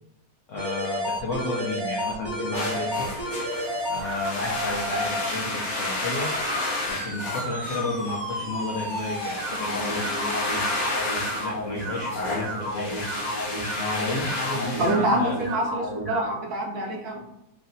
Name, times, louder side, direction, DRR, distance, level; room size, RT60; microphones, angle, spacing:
voice 1, 0.5-3.1 3.9-6.3 6.9-11.0 11.4-13.1 13.8-15.4, left 2 dB, 75° left, -2 dB, 0.6 m, -32 dB
sound 1, 0.6-16.3, equal, 15° right, 0.8 m, -32 dB
sound 2, 2.5-15.6, left 2 dB, 60° left, 1.1 m, -32 dB
voice 2, 14.8-17.2, right 1 dB, 65° right, 0 dB, 1.1 m, -26 dB
3.1 x 2.6 x 3.9 m, 0.87 s
omnidirectional pair, 2.0 m